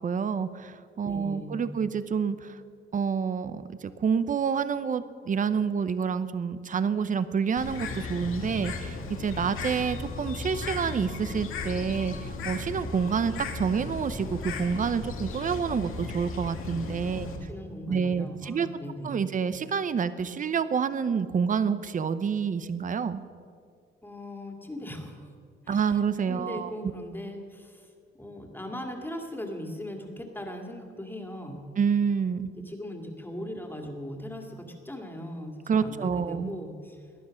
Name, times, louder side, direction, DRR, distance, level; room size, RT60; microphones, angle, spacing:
voice 1, 0.0-2.6 2.9-17.3 17.9-18.7 19.0-23.2 25.7-26.7 31.8-32.5 35.7-36.5, right 6 dB, 40° right, 13 dB, 0.8 m, -28 dB
voice 2, 1.0-1.7 17.1-19.2 24.0-25.3 25.6-31.7 32.4-37.0, equal, 10° left, 2 dB, 2.2 m, -39 dB
Bird, 7.6-17.4, left 3 dB, 80° left, 2.2 m, -36 dB
19.5 x 11.0 x 6.4 m, 2.2 s
cardioid pair, 100°, 21 cm